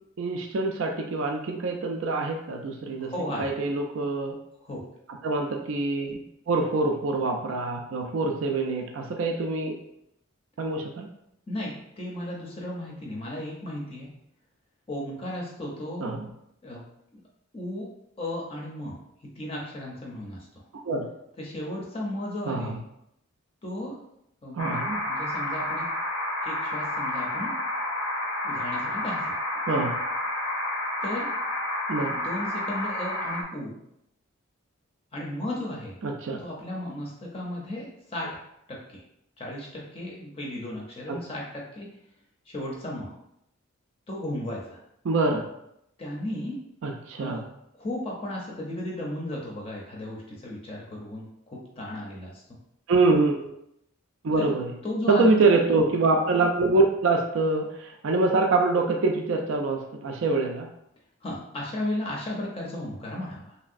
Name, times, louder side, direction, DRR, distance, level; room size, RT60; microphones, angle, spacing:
voice 1, 0.2-3.1 3.4-4.3 5.2-6.2 6.5-9.7 10.6-11.1 16.0-16.3 20.8-21.1 22.5-22.8 24.5-25.0 29.7-30.0 31.9-32.2 36.0-36.4 41.1-41.2 45.0-45.5 46.8-47.4 52.9-53.5 54.2-54.7 55.1-60.7, right 3 dB, 65° right, 2 dB, 0.4 m, -25 dB
voice 2, 3.0-3.5 4.6-4.8 11.5-14.1 14.9-16.0 16.6-16.8 17.5-17.9 18.2-19.0 19.4-20.5 21.4-22.7 23.6-24.0 24.4-24.8 25.1-25.9 26.4-27.5 28.4-29.2 31.0-31.3 32.1-33.8 35.1-35.9 36.4-38.4 38.7-39.0 39.4-41.9 42.5-43.1 44.1-44.8 46.0-46.6 47.2-47.5 47.8-52.4 54.4-54.5 54.8-55.4 61.2-63.6, left 1 dB, 25° left, -2 dB, 0.5 m, -35 dB
sound 1, 24.6-33.4, left 1 dB, 75° left, 0.6 m, -30 dB
3.1 x 2.7 x 2.5 m, 0.78 s
head